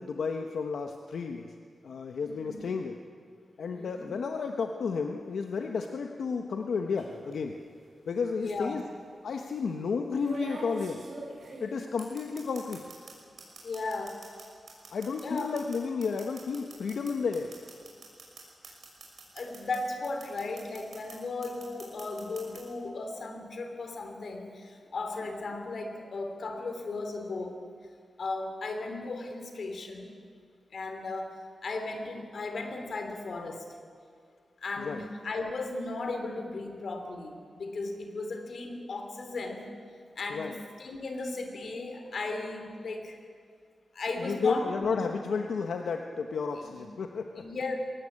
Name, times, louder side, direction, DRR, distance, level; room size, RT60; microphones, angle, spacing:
voice 1, 0.0-1.5 1.8-3.0 3.6-7.6 8.1-8.8 9.2-11.0 11.6-12.8 14.9-17.5 34.8-35.0 40.3-40.5 44.2-47.4, left 5 dB, 75° left, 4 dB, 1.1 m, -32 dB
voice 2, 2.2-2.6 3.7-4.1 8.4-8.8 13.6-14.2 15.2-15.5 19.3-27.6 28.2-30.2 30.7-33.7 34.6-39.7 40.1-43.2 43.9-45.2 46.6-46.8 47.4-47.8, left 3 dB, 55° left, 5 dB, 3.0 m, -36 dB
sound 1, 7.0-7.3 8.5-8.6 10.2-13.1 13.4-19.8 20.0-21.1 21.4-22.6, right 2 dB, 55° right, 6.0 m, -43 dB
22.0 x 18.5 x 8.8 m, 2.2 s
wide cardioid pair, 180°, 0 cm